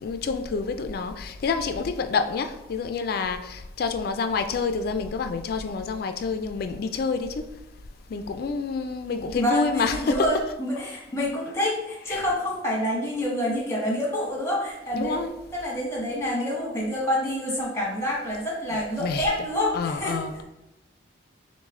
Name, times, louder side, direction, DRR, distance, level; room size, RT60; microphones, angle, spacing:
voice 1, 0.0-7.5 8.1-10.3 12.1-12.2 14.9-15.3 19.0-19.2 19.7-20.4, left 4 dB, 50° left, 0.3 m, -28 dB
voice 2, 9.3-20.2, left 1 dB, 15° left, 1.1 m, -27 dB
6.2 x 2.1 x 3.6 m
head